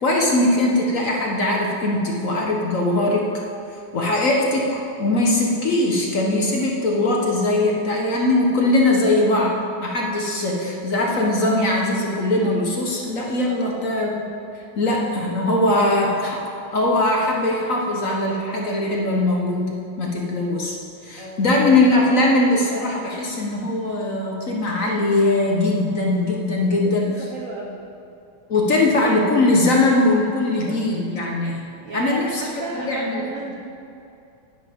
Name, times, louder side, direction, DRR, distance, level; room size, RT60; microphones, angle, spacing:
voice 1, 0.0-3.4 3.9-14.2 14.8-16.4 16.7-20.8 21.0-27.2 28.5-31.6 31.9-33.2, left 2 dB, 50° left, -1 dB, 1.3 m, -20 dB
voice 2, 13.4-13.8 21.2-21.5 26.6-26.8 27.1-27.8 30.4-30.8 31.8-33.5, right 2 dB, 55° right, -1 dB, 1.0 m, -34 dB
11.0 x 10.5 x 3.6 m, 2.6 s
omnidirectional pair, 2.1 m